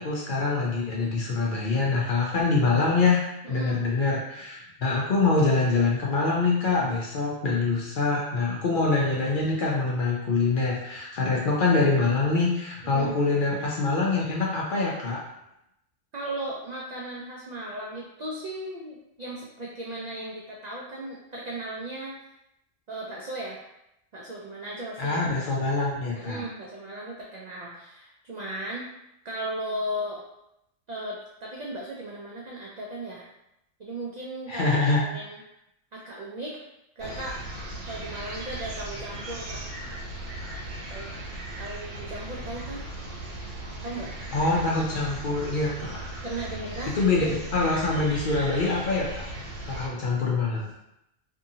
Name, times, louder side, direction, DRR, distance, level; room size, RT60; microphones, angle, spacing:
voice 1, 0.0-15.2 25.0-26.4 34.5-35.0 44.3-46.0 46.9-49.2 49.7-50.6, left 3 dB, 60° left, -3 dB, 0.5 m, -25 dB
voice 2, 3.4-3.9 12.8-13.2 16.1-22.2 22.9-23.6 24.1-25.2 26.1-28.9 29.2-30.2 30.9-33.3 33.8-35.4 35.9-36.6 37.0-37.4 37.9-39.6 40.9-41.1 41.6-42.9 43.8-44.1 46.2-47.0, right 1 dB, 70° right, -3 dB, 0.4 m, -36 dB
sound 1, 37.0-49.9, right 1 dB, 85° right, 1.1 m, -37 dB
2.7 x 2.6 x 2.7 m, 0.85 s
omnidirectional pair, 1.2 m